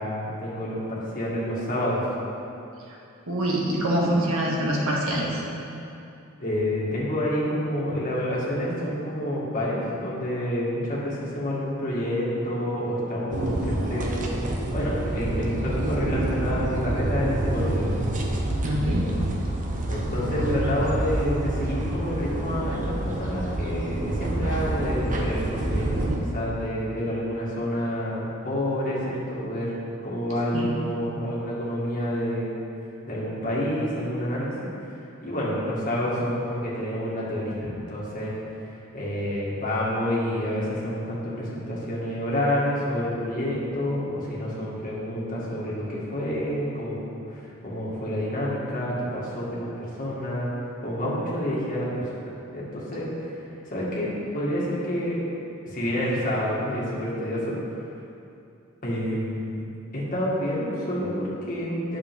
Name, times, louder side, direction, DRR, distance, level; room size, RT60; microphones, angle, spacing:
voice 1, 0.0-2.0 6.4-14.2 14.7-18.0 19.9-25.9 26.3-29.7 30.0-32.6 33.0-50.5 50.8-52.1 52.5-55.2 55.7-57.6 58.8-59.5 59.9-62.0, equal, 40° left, -6 dB, 2.0 m, -28 dB
voice 2, 3.3-5.4 18.6-19.1 30.5-30.7, right 1 dB, 75° right, -3 dB, 1.6 m, -25 dB
sound 1, 13.3-26.2, right 1 dB, 40° right, 0.8 m, -27 dB
10.0 x 6.8 x 3.7 m, 2.7 s
head